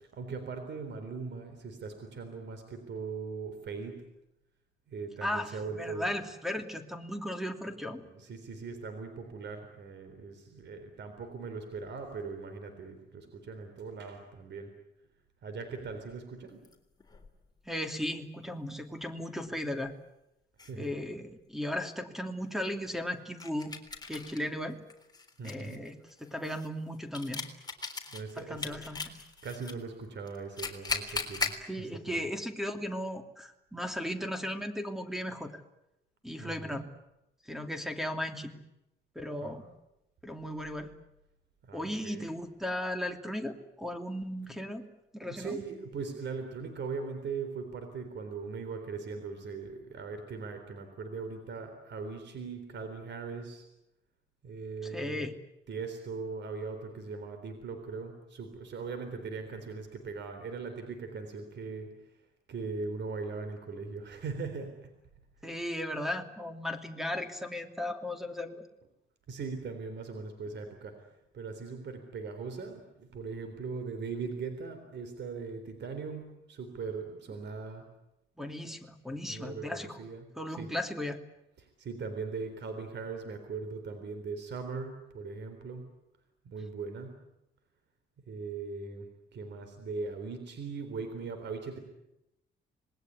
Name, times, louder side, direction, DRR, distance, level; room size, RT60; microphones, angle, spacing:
voice 1, 0.1-4.0 4.9-6.1 8.1-14.7 15.4-16.6 20.6-20.9 25.4-25.9 28.1-28.8 29.4-31.5 31.8-32.3 36.3-36.9 39.4-39.6 41.7-42.3 45.3-53.6 54.4-55.3 55.7-61.9 62.5-64.9 69.3-71.1 71.3-77.9 79.1-80.7 81.6-85.8 86.5-87.2 88.3-91.8, right 4 dB, 60° right, 7 dB, 4.0 m, -40 dB
voice 2, 5.2-8.0 17.7-19.9 20.8-23.7 24.1-24.8 25.4-27.4 28.4-29.2 31.6-35.6 36.2-36.9 37.5-38.6 39.1-39.7 40.2-40.9 41.7-44.8 45.1-45.6 54.8-55.3 65.4-68.6 78.4-80.0 80.3-81.2, left 1 dB, ahead, 7 dB, 2.9 m, -36 dB
sound 1, 16.6-17.3 19.8-19.9 20.6-20.7 23.4-24.5 24.9-29.7 30.3-31.6, left 4 dB, 20° left, 3.7 m, -38 dB
26.5 x 20.5 x 9.6 m, 0.90 s
cardioid pair, 90°, 20 cm